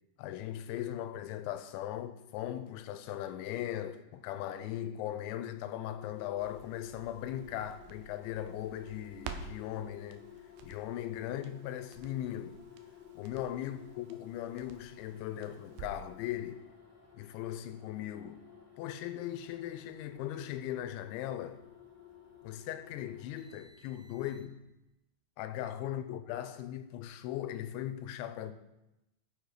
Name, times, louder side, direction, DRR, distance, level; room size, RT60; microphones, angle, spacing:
voice 1, 0.2-10.2 10.6-12.6 13.2-16.6 17.2-18.4 18.8-21.6 22.4-24.6 25.4-28.5, left 12 dB, 90° left, 3.0 m, -39 dB
sound 1, 5.7-24.7, left 9 dB, 10° right, 0.9 m, -55 dB
Crackle, 6.4-16.2 16.5-16.6, right 6 dB, 80° right, 2.7 m, -51 dB
13.5 x 6.8 x 4.9 m
omnidirectional pair, 5.2 m